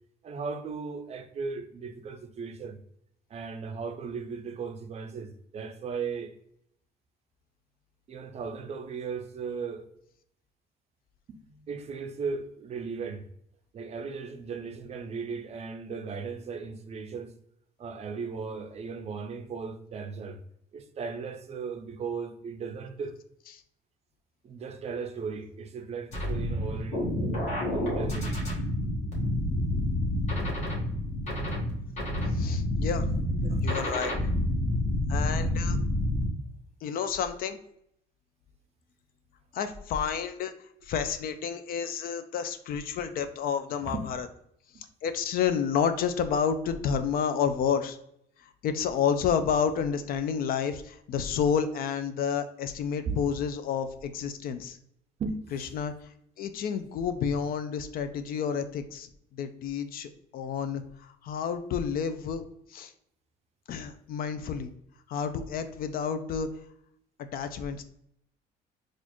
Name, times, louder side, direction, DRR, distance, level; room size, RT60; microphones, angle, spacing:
voice 1, 0.2-2.8 3.3-6.3 8.1-9.9 11.3-11.4 11.7-13.3 13.7-17.3 17.8-20.4 20.7-23.1 24.4-27.1 27.7-28.4 33.4-33.6 43.9-44.1 53.0-53.2 55.2-55.5, right 5 dB, 40° right, 0.4 m, -36 dB
sound 1, 26.1-36.3, left 1 dB, 45° left, 1.4 m, -28 dB
voice 2, 32.3-33.1 33.6-34.2 35.1-35.8 36.8-37.6 39.5-40.5 40.8-44.3 44.7-48.0 48.4-54.8 55.5-62.4 62.7-62.9 63.7-64.7 65.1-66.5 67.3-67.8, left 7 dB, 60° left, 0.4 m, -30 dB
4.1 x 2.5 x 2.9 m
cardioid pair, 110°, 17 cm